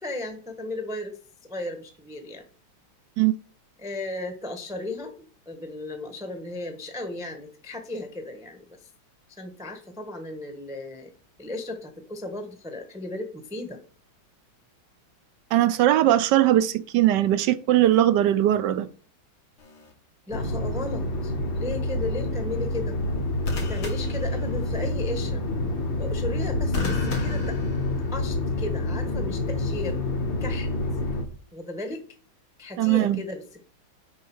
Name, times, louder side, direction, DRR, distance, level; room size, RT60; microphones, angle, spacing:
voice 1, 0.0-1.2 1.4-2.4 3.8-8.9 9.4-11.1 11.4-13.8 20.3-23.0 23.6-25.4 26.0-27.6 28.1-30.0 30.4-30.7 31.5-32.0 32.6-33.7, left 2 dB, ahead, 0.8 m, -35 dB
voice 2, 15.5-18.9 32.8-33.2, right 13 dB, 70° right, 1.1 m, -20 dB
sound 1, 19.6-19.9 23.4-24.9 26.7-28.4 29.6-29.9, left 4 dB, 85° left, 2.7 m, -33 dB
sound 2, 20.3-31.2, left 2 dB, 70° left, 2.2 m, -28 dB
6.5 x 5.4 x 7.1 m
omnidirectional pair, 2.3 m